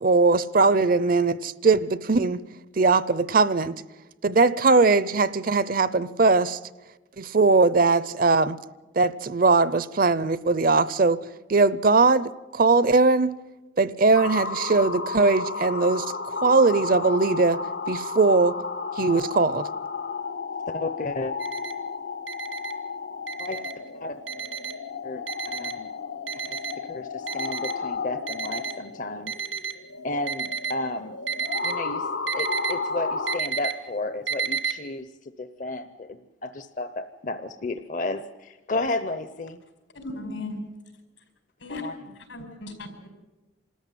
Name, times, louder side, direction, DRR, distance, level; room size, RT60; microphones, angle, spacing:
voice 1, 0.0-2.4 2.8-3.8 4.2-6.6 7.2-8.6 9.0-11.2 11.5-13.3 13.8-16.1 16.4-17.6 17.9-18.6 19.0-19.7, right 3 dB, 45° right, 0.6 m, -20 dB
sound 1, 14.1-33.4, left 4 dB, 70° left, 0.8 m, -33 dB
voice 2, 20.7-21.4 23.4-23.6 23.9-24.5 25.0-25.9 26.3-29.3 30.0-31.2 31.6-32.1 32.3-39.6 41.7-42.1, left 2 dB, 40° left, 0.7 m, -33 dB
Alarm, 21.4-21.7 22.3-22.7 23.3-23.7 24.3-24.7 25.3-25.7 26.3-26.7 27.3-27.7 28.3-28.7 29.3-29.7 30.3-30.7 31.3-31.7 32.3-32.7 33.3-33.7 34.3-34.7, right 6 dB, 85° right, 1.9 m, -30 dB
voice 3, 39.9-40.6 41.6-41.8 42.3-43.1, left 2 dB, 90° left, 4.9 m, -36 dB
26.0 x 14.0 x 9.2 m
head